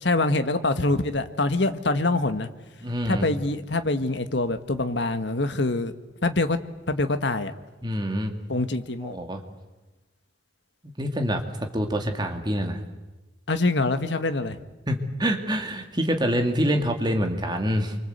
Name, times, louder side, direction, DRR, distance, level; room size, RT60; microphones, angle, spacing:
voice 1, 0.0-2.5 3.0-5.9 6.2-6.6 6.9-7.5 8.5-9.2 13.5-14.6, left 2 dB, 65° left, 9 dB, 1.5 m, -25 dB
voice 2, 2.8-3.3 7.8-8.3 9.0-9.4 11.0-11.4 11.7-12.8 14.9-18.0, equal, 20° right, 4 dB, 2.5 m, -26 dB
29.0 x 24.5 x 8.1 m, 1.1 s
head